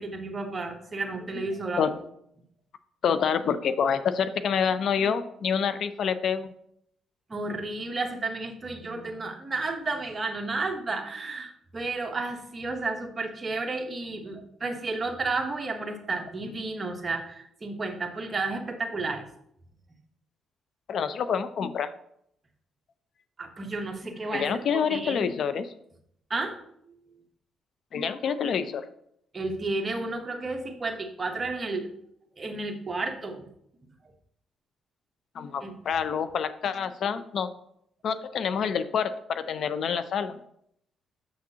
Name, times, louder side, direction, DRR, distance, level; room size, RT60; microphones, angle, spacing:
voice 1, 0.0-1.9 7.3-19.2 23.4-24.5 24.9-25.2 26.3-26.6 29.3-31.9 32.4-33.4 35.6-35.7, right 3 dB, 30° right, 3 dB, 1.1 m, -32 dB
voice 2, 3.0-6.5 20.9-21.9 24.3-25.7 27.9-28.9 35.4-37.5 38.0-40.4, left 7 dB, 65° left, 12 dB, 0.4 m, -27 dB
7.1 x 6.0 x 2.8 m, 0.71 s
cardioid pair, 90°, 0 cm